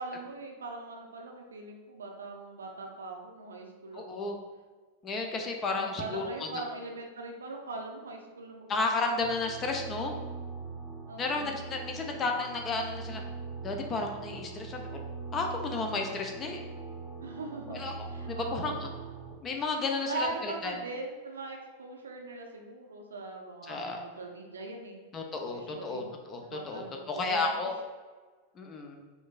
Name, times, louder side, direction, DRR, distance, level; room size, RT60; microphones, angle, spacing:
voice 1, 0.0-4.2 5.7-9.1 11.1-11.5 17.2-18.8 20.1-25.0 25.5-26.1 26.4-27.7, right 3 dB, 70° right, 1 dB, 0.5 m, -41 dB
voice 2, 3.9-4.4 5.0-6.6 8.7-10.1 11.2-13.2 13.6-15.0 15.3-16.6 17.7-18.9 19.4-20.8 23.7-24.0 25.1-27.7 28.6-29.0, left 3 dB, 25° left, 3 dB, 0.5 m, -33 dB
sound 1, 9.2-19.3, right 4 dB, 20° right, 0.9 m, -42 dB
4.5 x 2.5 x 2.3 m, 1.4 s
figure-of-eight pair, 90°, 0 cm